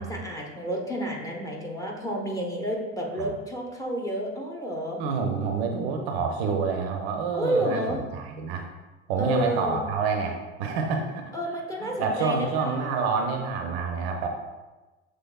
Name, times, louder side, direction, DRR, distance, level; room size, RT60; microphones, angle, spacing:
voice 1, 0.0-5.0 7.3-8.0 9.2-9.8 11.3-12.8, equal, 10° left, -2 dB, 0.9 m, -30 dB
voice 2, 5.0-8.7 9.1-11.3 11.8-14.3, right 5 dB, 60° right, 4 dB, 0.6 m, -28 dB
6.9 x 3.2 x 2.3 m, 1.2 s
figure-of-eight pair, 60°, 36 cm